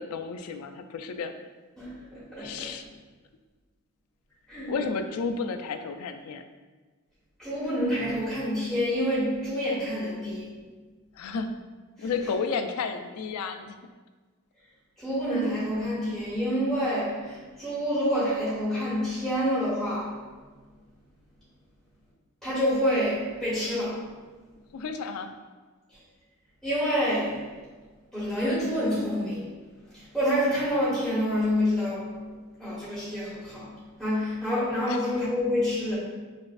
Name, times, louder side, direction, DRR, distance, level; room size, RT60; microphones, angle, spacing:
voice 1, 0.0-1.3 2.4-2.8 4.7-6.4 11.2-11.5 12.0-13.8 24.7-25.4 34.9-35.0, left 5 dB, 85° left, 8 dB, 0.3 m, -32 dB
voice 2, 1.8-2.7 4.5-4.7 7.4-10.5 12.0-12.1 15.0-20.2 22.4-24.1 26.6-27.5 28.1-29.5 29.9-32.2 32.6-35.9, equal, ahead, -12 dB, 1.3 m, -27 dB
5.1 x 2.5 x 2.5 m, 1.3 s
head